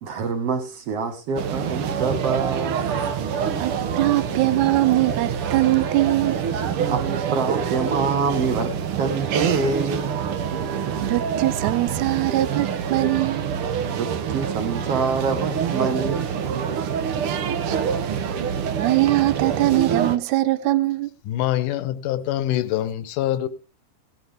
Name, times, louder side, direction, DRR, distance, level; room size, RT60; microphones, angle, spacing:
voice 1, 0.0-2.8 6.9-7.0 7.3-10.2 13.9-16.3, right 4 dB, 55° right, 2.1 m, -26 dB
sound 1, 1.4-20.2, right 7 dB, 90° right, 1.2 m, -26 dB
voice 2, 3.6-6.4 11.0-13.5 17.2-17.4 17.7-17.8 18.4-21.1, right 17 dB, 75° right, 2.0 m, -22 dB
voice 3, 21.3-23.5, left 13 dB, 75° left, 2.3 m, -24 dB
17.5 x 11.5 x 3.4 m
omnidirectional pair, 4.0 m